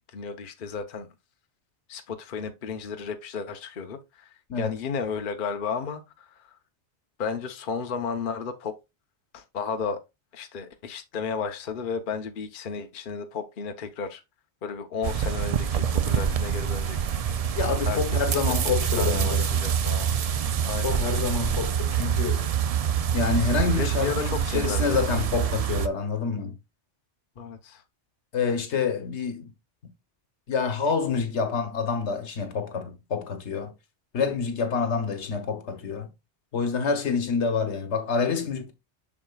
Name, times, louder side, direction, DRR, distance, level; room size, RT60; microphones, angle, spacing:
voice 1, 0.1-1.1 1.9-6.6 7.2-8.8 9.3-10.0 10.3-14.2 14.6-17.1 17.8-18.4 18.8-20.1 20.6-21.0 23.7-25.0 27.4-27.8, left 5 dB, 50° left, 0.9 m, -33 dB
sound 1, 15.0-25.9, right 8 dB, 65° right, 0.3 m, -26 dB
voice 2, 17.5-19.4 20.8-22.5 23.1-26.5 28.3-29.5 30.5-33.7 34.1-36.1 36.5-38.7, left 5 dB, 75° left, 1.4 m, -27 dB
7.2 x 6.3 x 2.3 m
omnidirectional pair, 1.2 m